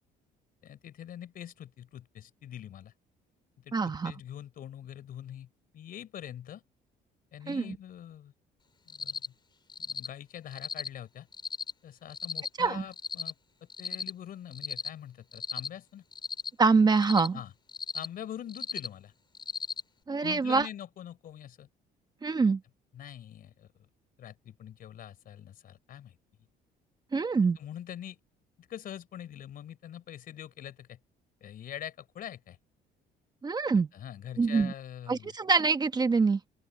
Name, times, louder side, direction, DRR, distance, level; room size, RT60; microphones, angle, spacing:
voice 1, 0.6-2.9 3.6-5.5 5.7-6.6 7.3-8.3 8.9-9.2 9.8-11.3 11.8-13.3 13.8-16.0 17.3-17.5 17.9-19.1 20.2-21.7 22.9-23.9 24.2-26.2 27.6-28.2 28.6-31.0 31.4-32.6 33.9-35.3, left 10 dB, 60° left, 4.6 m, -44 dB
voice 2, 3.7-4.1 7.5-7.6 12.6-12.8 16.6-17.4 20.1-20.7 22.2-22.6 27.1-27.6 33.4-33.9 34.4-34.7 35.1-36.4, right 4 dB, 25° right, 1.2 m, -25 dB
Cricket, 8.9-9.3 9.7-10.1 10.5-10.9 11.3-11.7 12.1-12.5 12.9-13.3 13.7-14.1 14.5-14.9 15.3-15.7 16.1-16.5 16.9-17.3 17.7-18.1 18.5-18.9 19.3-19.8, left 5 dB, 25° left, 4.6 m, -36 dB
open air
cardioid pair, 110°, 17 cm